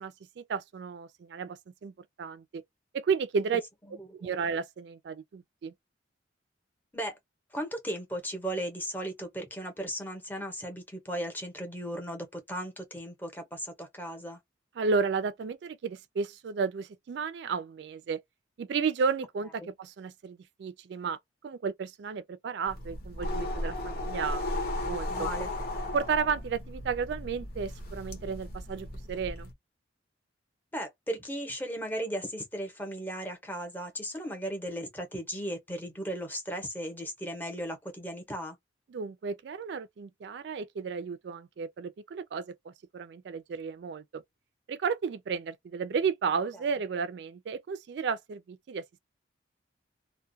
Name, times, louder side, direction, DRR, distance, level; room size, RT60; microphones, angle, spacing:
voice 1, 0.0-2.6 2.9-3.6 4.1-5.7 14.8-18.2 18.6-21.2 21.4-25.3 25.9-29.5 38.9-44.2 44.7-49.0, right 5 dB, 60° right, 0.3 m, -33 dB
voice 2, 3.9-4.3 6.9-7.2 7.5-14.4 25.1-25.5 30.7-38.6, equal, 10° left, 0.7 m, -36 dB
sound 1, 22.7-29.5, left 1 dB, 50° left, 0.8 m, -35 dB
2.3 x 2.1 x 2.6 m
head